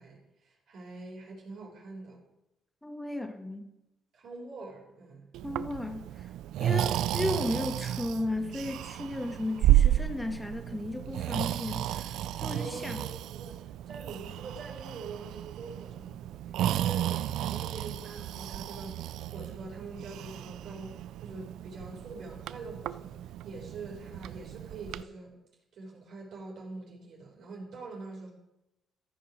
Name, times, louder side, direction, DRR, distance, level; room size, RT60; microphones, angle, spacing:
voice 1, 0.0-2.2 4.1-5.3 12.5-13.6 13.9-25.3 25.7-28.3, right 3 dB, 70° right, -2 dB, 3.8 m, -44 dB
voice 2, 2.8-3.7 5.4-6.0 6.6-13.0, left 1 dB, 10° left, 6 dB, 1.5 m, -35 dB
Breathing, 5.3-25.0, right 13 dB, 85° right, 0.3 m, -32 dB
14.0 x 5.9 x 6.1 m, 0.91 s
cardioid pair, 90°, 0 cm